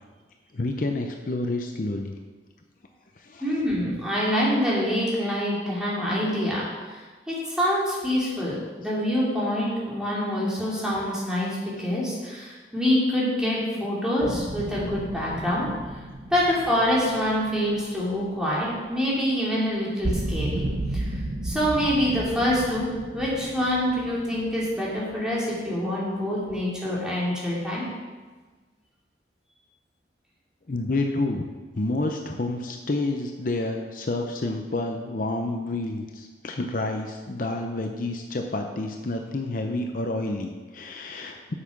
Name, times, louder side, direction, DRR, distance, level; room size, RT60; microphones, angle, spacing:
voice 1, 0.5-2.1 3.2-3.4 30.7-31.5 31.8-41.5, left 2 dB, 50° left, 4 dB, 0.7 m, -29 dB
voice 2, 3.4-7.0 7.3-15.7 16.3-20.7 20.9-21.1 21.4-27.8, equal, 5° right, -7 dB, 2.8 m, -26 dB
sound 1, 14.2-19.1 19.4-19.5 19.8-25.3, right 1 dB, 80° right, 1.2 m, -33 dB
8.5 x 7.2 x 6.0 m, 1.3 s
head